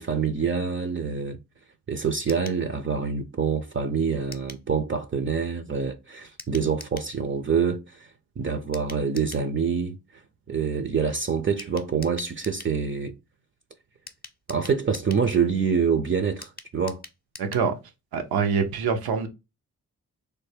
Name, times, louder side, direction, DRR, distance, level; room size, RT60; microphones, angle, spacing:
voice 1, 0.0-1.4 1.9-8.1 8.4-10.0 10.5-13.1 14.5-17.0, right 6 dB, 35° right, 0.5 m, -26 dB
sound 1, 2.3-2.6 4.3-4.7 6.4-7.1 8.7-9.5 11.6-12.8 14.1-15.3 16.4-17.7 18.0-18.1 18.3-18.4, left 4 dB, 25° left, 0.7 m, -44 dB
voice 2, 17.4-17.7 18.1-19.3, right 6 dB, 85° right, 0.7 m, -25 dB
3.3 x 2.1 x 3.3 m
supercardioid pair, 50°, 36 cm